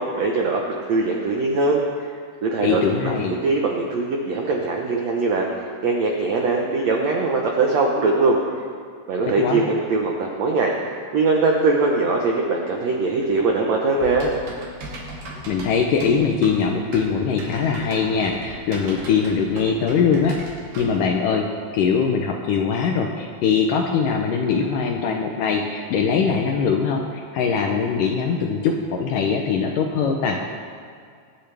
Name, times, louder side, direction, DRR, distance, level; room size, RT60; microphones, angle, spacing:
voice 1, 0.0-2.1 2.4-5.5 5.8-8.4 9.1-10.7 11.1-14.3, right 3 dB, 75° right, 0 dB, 1.5 m, -21 dB
voice 2, 2.6-3.4 9.4-9.6 15.5-20.4 20.8-21.5 21.7-30.4, left 6 dB, 75° left, 2 dB, 2.0 m, -22 dB
Typing, 14.0-21.0, right 1 dB, 60° right, 3.9 m, -37 dB
24.0 x 10.0 x 3.4 m, 2.1 s
omnidirectional pair, 4.6 m